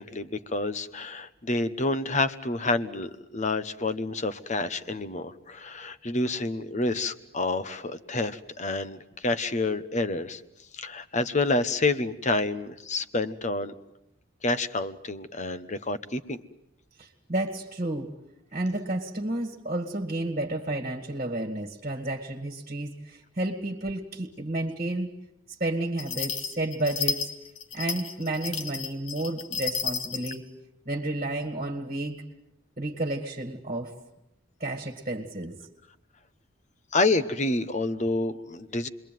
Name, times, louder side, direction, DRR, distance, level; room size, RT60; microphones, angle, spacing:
voice 1, 0.0-10.4 10.7-13.7 14.4-16.4 36.9-38.9, left 2 dB, 35° left, 13 dB, 1.1 m, -28 dB
voice 2, 17.0-18.1 18.5-25.1 25.6-27.3 27.7-30.5 30.9-32.2 32.8-34.0 34.6-35.6, right 1 dB, 35° right, 4 dB, 2.0 m, -31 dB
sound 1, 26.0-30.4, left 6 dB, 70° left, 2.3 m, -32 dB
29.0 x 22.0 x 9.3 m, 0.84 s
head